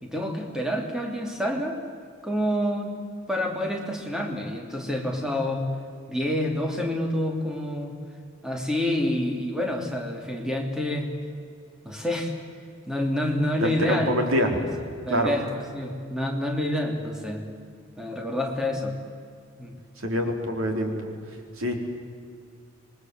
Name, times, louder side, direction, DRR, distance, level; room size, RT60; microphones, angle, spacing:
voice 1, 0.0-1.8 2.2-3.0 3.3-5.7 6.1-7.9 8.4-11.1 11.8-12.3 12.9-14.2 14.5-14.6 15.1-15.5 15.7-17.5 18.0-19.0 19.6-19.7, left 1 dB, 5° right, 1 dB, 2.8 m, -28 dB
voice 2, 13.6-14.6 15.1-15.3 20.0-20.9 21.6-21.7, equal, 90° right, 3 dB, 4.1 m, -25 dB
26.5 x 22.0 x 8.0 m, 2.3 s
head